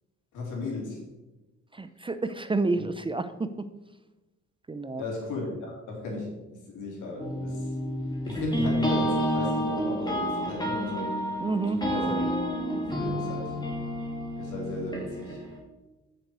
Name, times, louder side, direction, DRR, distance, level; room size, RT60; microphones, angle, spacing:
voice 1, 0.3-1.0 5.0-6.3 6.7-7.7 8.2-11.1 11.7-12.2 12.8-13.6 14.4-15.4, left 2 dB, 85° left, -1 dB, 3.1 m, -35 dB
voice 2, 1.7-3.7 4.7-5.0 11.4-11.9, right 3 dB, 15° right, 11 dB, 0.5 m, -29 dB
sound 1, 7.2-15.6, equal, 15° left, 2.5 m, -30 dB
7.9 x 6.8 x 4.7 m, 1.1 s
cardioid pair, 90°, 30 cm